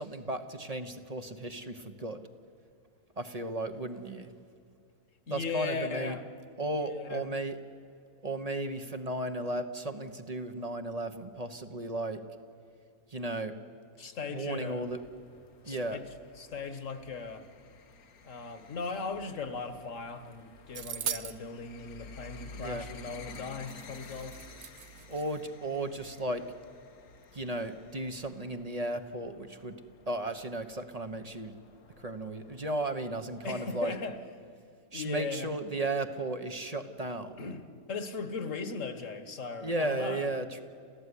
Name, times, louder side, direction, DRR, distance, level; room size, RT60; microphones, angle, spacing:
voice 1, 0.0-2.2 3.2-4.3 5.3-6.2 6.6-7.6 8.2-12.2 13.1-13.5 14.3-15.0 15.7-16.0 22.5-22.9 25.1-26.5 27.3-29.8 30.1-31.6 32.0-33.9 34.9-37.5 39.6-40.6, right 2 dB, 30° right, 8 dB, 1.1 m, -35 dB
voice 2, 5.3-6.2 6.9-7.2 14.0-14.8 15.7-16.1 16.4-17.4 18.2-24.4 33.4-34.2 34.9-35.5 37.4-40.3, left 4 dB, 60° left, 10 dB, 1.8 m, -38 dB
sound 1, 14.8-34.2, left 4 dB, 85° left, 1.7 m, -53 dB
sound 2, 20.7-21.4 23.3-23.4 23.7-25.4, right 8 dB, 55° right, 1.1 m, -39 dB
28.5 x 15.0 x 9.9 m, 2.4 s
omnidirectional pair, 1.5 m